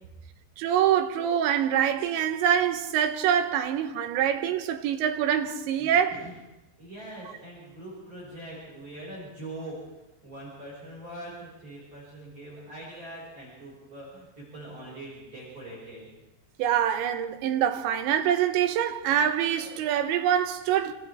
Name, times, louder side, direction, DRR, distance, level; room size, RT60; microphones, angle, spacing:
voice 1, 0.6-6.2 16.6-20.9, right 9 dB, 85° right, 3.4 m, -25 dB
voice 2, 5.8-6.3 6.8-9.8 10.2-16.1, right 1 dB, 35° right, 6.8 m, -42 dB
28.0 x 26.0 x 3.6 m
omnidirectional pair, 5.2 m